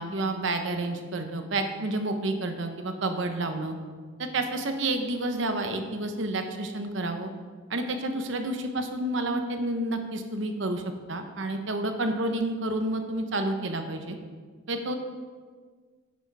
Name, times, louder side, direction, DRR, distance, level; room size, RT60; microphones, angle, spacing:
voice 1, 0.0-3.7 4.2-7.3 7.7-10.8 11.1-14.2 14.7-15.0, right 2 dB, 65° right, 6 dB, 0.9 m, -29 dB
9.5 x 6.3 x 4.8 m, 1.5 s
head